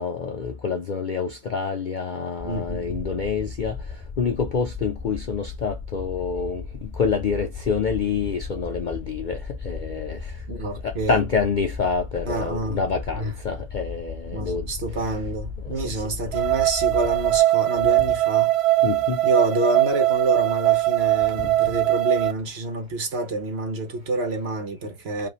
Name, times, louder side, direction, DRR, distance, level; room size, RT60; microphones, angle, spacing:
voice 1, 0.0-3.8 4.2-14.7 15.7-16.0 18.8-19.2 21.4-21.8, left 5 dB, 90° left, 0.4 m, -27 dB
sound 1, 2.4-17.4, left 4 dB, 5° left, 2.2 m, -36 dB
voice 2, 2.4-3.1 10.5-11.2 12.3-12.8 13.1-13.3 14.3-18.5 19.2-25.3, right 2 dB, 45° right, 1.2 m, -28 dB
sound 2, 16.3-22.3, right 16 dB, 85° right, 1.1 m, -21 dB
5.2 x 2.9 x 3.0 m
omnidirectional pair, 1.6 m